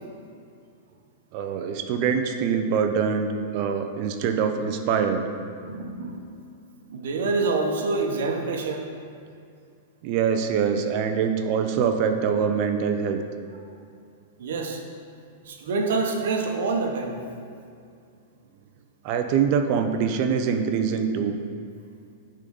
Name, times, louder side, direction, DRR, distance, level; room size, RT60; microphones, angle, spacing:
voice 1, 1.3-5.3 10.0-13.2 19.0-21.4, right 6 dB, 40° right, 7 dB, 0.6 m, -24 dB
voice 2, 5.6-6.3 6.9-8.9 14.4-14.8 15.5-17.2, right 3 dB, 70° right, 3 dB, 1.0 m, -26 dB
10.0 x 3.8 x 5.4 m, 2.4 s
supercardioid pair, 160°, 0 cm